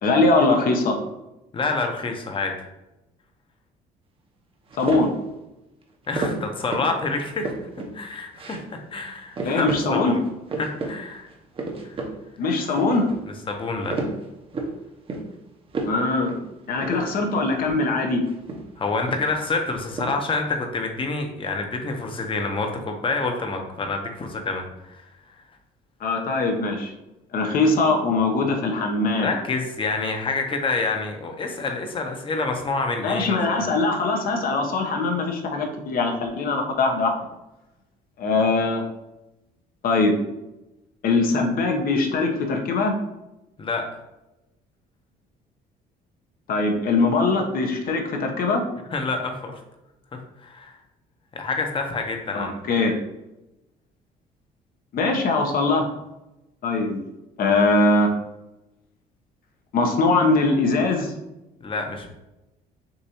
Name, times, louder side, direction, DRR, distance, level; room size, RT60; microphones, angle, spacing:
voice 1, 0.0-1.0 4.8-5.1 9.4-10.2 12.4-13.1 15.9-16.3 16.7-18.2 26.0-26.9 27.3-29.3 33.0-37.2 38.2-38.8 39.8-40.2 41.0-42.9 46.5-48.6 52.3-53.0 54.9-55.9 56.6-57.0 57.4-58.1 59.7-61.1, left 3 dB, 60° left, 3 dB, 0.9 m, -21 dB
voice 2, 1.5-2.5 6.1-7.5 7.9-10.2 10.6-11.3 11.8-12.0 13.5-14.0 18.8-25.0 29.2-33.4 43.6-43.8 48.9-49.6 50.4-50.7 51.3-52.5 61.6-62.1, left 3 dB, 30° left, 3 dB, 0.8 m, -27 dB
sound 1, 4.7-5.2 6.1-7.0 7.2-7.9 8.3-8.7 9.0-9.1 9.3-9.9 10.2-10.9 11.3-12.1 12.5-13.2 13.6-14.8 15.1-15.4 15.7-16.0 16.3-16.4 16.8-17.6 18.2-19.4 19.7-20.1, right 3 dB, 35° right, 0.8 m, -31 dB
6.6 x 2.6 x 2.9 m, 0.96 s
cardioid pair, 110°, 17 cm